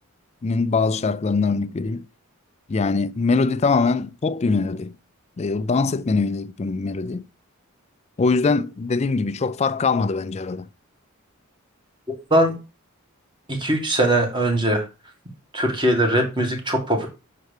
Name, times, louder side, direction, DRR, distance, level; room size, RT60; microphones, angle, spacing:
voice 1, 0.4-2.1 2.7-4.9 5.4-7.2 8.2-10.7, left 4 dB, 30° left, 0.4 m, -22 dB
voice 2, 12.1-12.5 13.5-14.8 15.5-17.1, right 1 dB, 20° right, 2.0 m, -21 dB
6.7 x 4.6 x 6.5 m
head